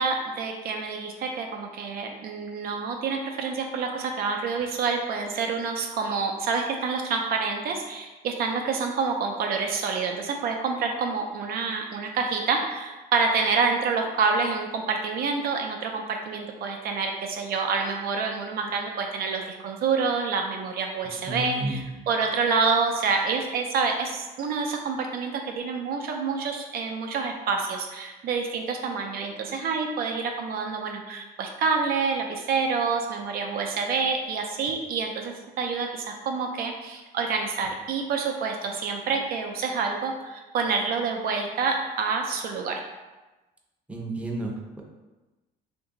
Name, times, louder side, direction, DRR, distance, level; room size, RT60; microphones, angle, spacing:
voice 1, 0.0-42.8, right 5 dB, 65° right, 2 dB, 0.5 m, -27 dB
voice 2, 21.3-21.9 43.9-44.8, right 1 dB, 10° right, -1 dB, 0.6 m, -31 dB
2.9 x 2.6 x 3.7 m, 1.1 s
cardioid pair, 110°, 17 cm